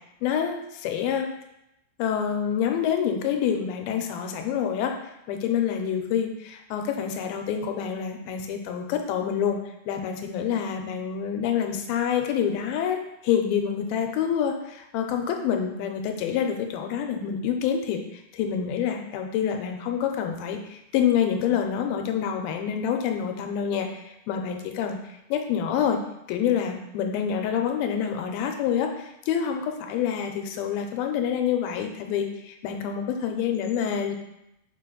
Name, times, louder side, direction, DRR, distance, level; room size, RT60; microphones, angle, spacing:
voice 1, 0.2-1.3 2.0-4.9 5.3-9.6 9.9-25.0 25.3-26.0 26.3-34.1, left 8 dB, 85° left, 4 dB, 2.5 m, -27 dB
5.8 x 4.9 x 3.8 m, 0.86 s
omnidirectional pair, 4.4 m